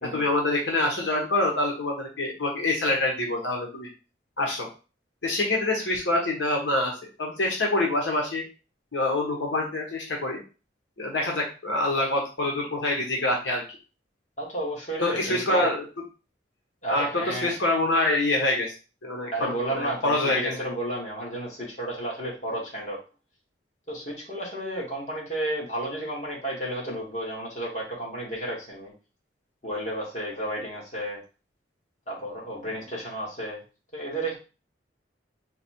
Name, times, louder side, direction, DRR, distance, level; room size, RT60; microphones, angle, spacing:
voice 1, 0.0-3.9 4.4-4.7 5.2-8.4 8.9-10.4 11.0-13.6 15.0-15.8 16.9-18.7 19.0-20.5, left 2 dB, 85° left, -1 dB, 1.1 m, -26 dB
voice 2, 14.4-15.7 16.8-17.6 19.3-23.0 23.9-28.9 29.6-31.2 32.1-33.6 33.9-34.4, right 1 dB, 40° left, -3 dB, 1.7 m, -32 dB
4.1 x 2.3 x 4.4 m, 0.33 s
head